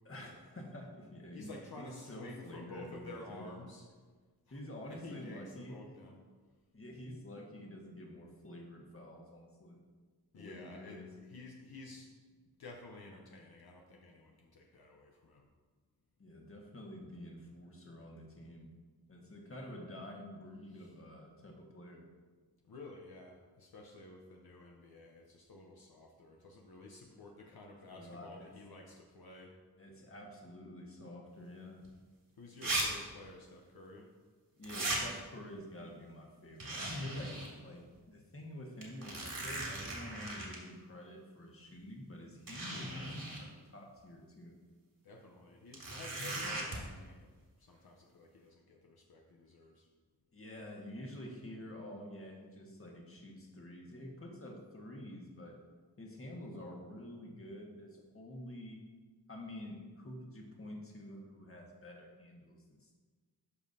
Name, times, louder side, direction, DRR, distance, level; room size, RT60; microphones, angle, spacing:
voice 1, 0.0-3.5 4.5-5.9 6.7-9.8 10.4-11.1 16.2-18.7 19.1-22.1 27.0-27.3 27.9-28.5 29.8-31.8 34.6-44.6 50.3-55.6 56.0-58.8 59.3-62.9, left 1 dB, 35° left, 0 dB, 1.5 m, -48 dB
voice 2, 1.3-3.8 4.9-6.2 10.3-12.1 12.6-15.5 20.7-20.9 22.7-29.5 32.4-34.1 45.0-47.3 47.6-49.9, left 2 dB, 70° left, 0 dB, 0.9 m, -52 dB
sound 1, 31.8-31.9 32.6-32.8 33.1-33.2 34.6-35.0 36.6-37.5 37.9-38.0 38.8-40.5 41.7-41.8 42.5-43.4 45.7-46.8, right 1 dB, 60° right, 2.4 m, -38 dB
13.0 x 5.2 x 2.7 m, 1.4 s
wide cardioid pair, 75°, 39 cm